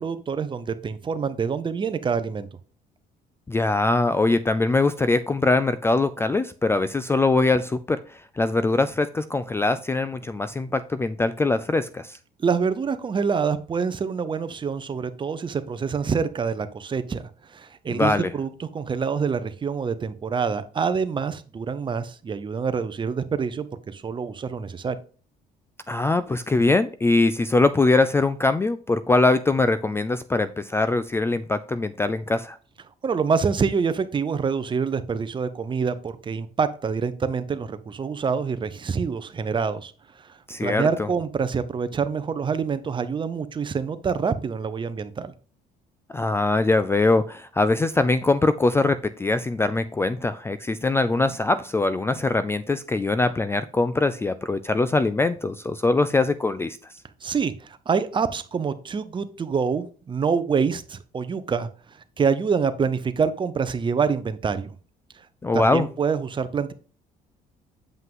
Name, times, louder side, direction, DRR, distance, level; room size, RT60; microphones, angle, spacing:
voice 1, 0.0-2.5 12.4-25.0 33.0-39.9 40.2-45.3 57.2-64.8 65.2-65.3 65.5-66.7, right 5 dB, 30° right, 0.8 m, -26 dB
voice 2, 3.5-12.2 17.9-18.3 25.9-32.6 40.5-41.1 46.1-56.8 65.4-65.9, left 3 dB, 15° left, 0.4 m, -22 dB
7.7 x 5.6 x 3.7 m
cardioid pair, 110°, 17 cm